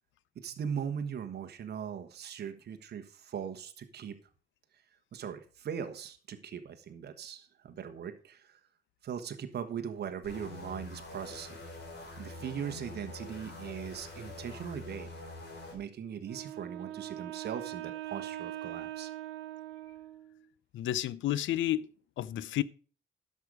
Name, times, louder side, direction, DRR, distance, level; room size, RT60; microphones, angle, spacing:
voice 1, 0.3-4.2 5.1-8.6 9.0-11.6 12.2-15.1 15.7-19.1, right 8 dB, 55° right, 1.2 m, -40 dB
sound 1, 10.2-15.8, left 2 dB, 60° left, 3.6 m, -45 dB
Wind instrument woodwind instrument, 16.2-20.5, right 14 dB, 80° right, 1.0 m, -42 dB
voice 2, 20.7-21.9 22.2-22.6, left 13 dB, 75° left, 0.6 m, -31 dB
11.0 x 6.6 x 4.8 m
cardioid pair, 90°, 20 cm